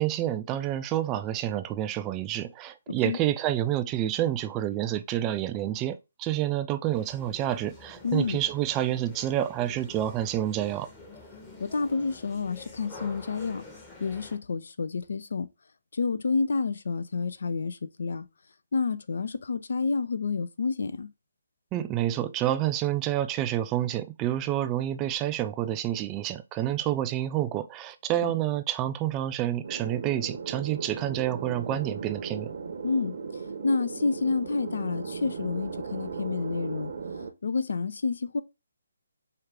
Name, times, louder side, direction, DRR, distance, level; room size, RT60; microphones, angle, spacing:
voice 1, 0.0-10.9 21.7-32.5, right 12 dB, 20° right, 0.3 m, -28 dB
voice 2, 2.9-3.2 8.0-8.4 11.6-13.6 14.0-15.5 15.9-18.3 18.7-21.1 28.2-28.3 32.8-33.2 33.6-36.9 37.4-38.4, left 4 dB, 65° left, 0.4 m, -29 dB
sound 1, 6.9-14.4, left 3 dB, 10° left, 0.9 m, -48 dB
sound 2, 29.6-37.3, right 5 dB, 55° right, 0.7 m, -37 dB
4.6 x 2.4 x 3.3 m
figure-of-eight pair, 145°, 0 cm